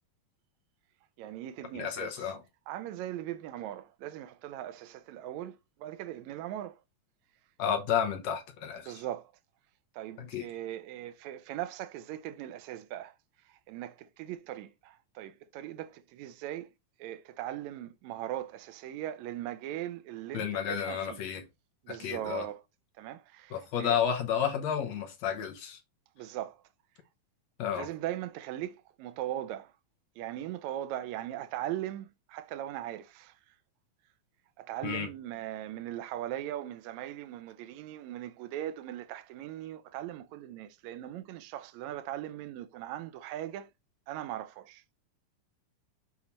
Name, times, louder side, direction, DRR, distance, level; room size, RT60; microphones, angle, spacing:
voice 1, 1.2-2.1 2.7-6.8 8.8-9.3 9.9-13.1 13.5-16.7 17.0-21.2 21.8-22.6 23.0-24.0 26.2-26.6 27.7-29.7 30.2-33.4 34.6-43.7 44.1-44.8, right 12 dB, 80° right, 1.7 m, -39 dB
voice 2, 1.7-2.4 7.6-8.9 10.2-10.5 20.3-21.4 21.9-22.5 23.5-25.8 27.6-27.9 34.8-35.1, left 8 dB, 65° left, 1.9 m, -31 dB
7.2 x 3.2 x 4.2 m
omnidirectional pair, 3.8 m